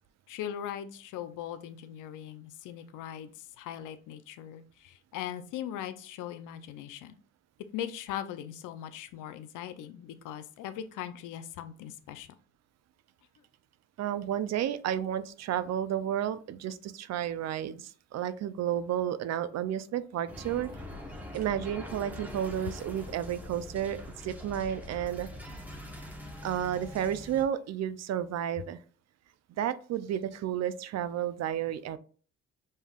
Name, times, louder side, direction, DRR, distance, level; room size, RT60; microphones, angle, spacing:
voice 1, 0.3-7.1 7.7-12.3, left 10 dB, 85° left, 11 dB, 0.5 m, -40 dB
voice 2, 14.0-20.7 21.3-25.3 26.4-28.8 29.6-32.0, right 10 dB, 60° right, 14 dB, 0.5 m, -32 dB
sound 1, 20.3-27.4, left 1 dB, 5° right, 1.0 m, -43 dB
5.4 x 3.2 x 2.3 m, 0.42 s
cardioid pair, 90°, 30 cm